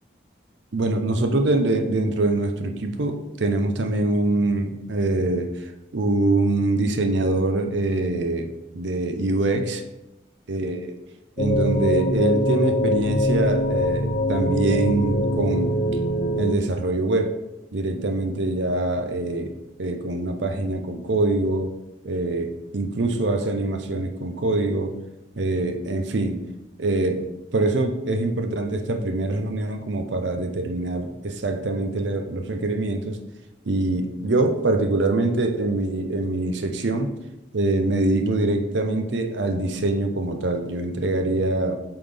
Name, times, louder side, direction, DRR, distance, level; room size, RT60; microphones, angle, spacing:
voice 1, 0.7-9.8 10.5-11.0 11.4-15.9 16.4-17.4 17.7-21.7 22.0-25.0 25.4-26.4 26.8-27.2 27.5-33.2 33.6-37.2 37.5-41.8, right 2 dB, 75° right, 5 dB, 0.7 m, -24 dB
sound 1, 11.4-16.5, equal, 30° left, 0.4 m, -23 dB
8.8 x 3.8 x 3.4 m, 0.92 s
head